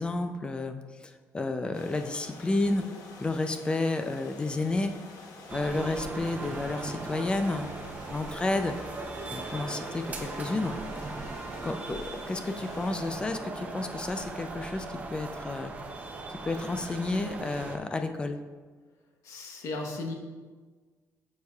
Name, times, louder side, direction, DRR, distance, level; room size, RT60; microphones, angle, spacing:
voice 1, 0.0-2.8 3.2-4.9 5.5-7.7 8.1-8.8 9.3-10.8 11.6-15.7 16.4-18.4, left 2 dB, 15° left, 7 dB, 0.4 m, -31 dB
sound 1, 1.7-13.1, left 3 dB, 85° left, 1.0 m, -48 dB
sound 2, 5.5-17.8, right 3 dB, 25° right, 0.6 m, -39 dB
voice 2, 19.2-20.1, left 2 dB, 65° left, 2 dB, 1.1 m, -35 dB
9.8 x 6.5 x 2.4 m, 1.4 s
cardioid pair, 165°, 6 cm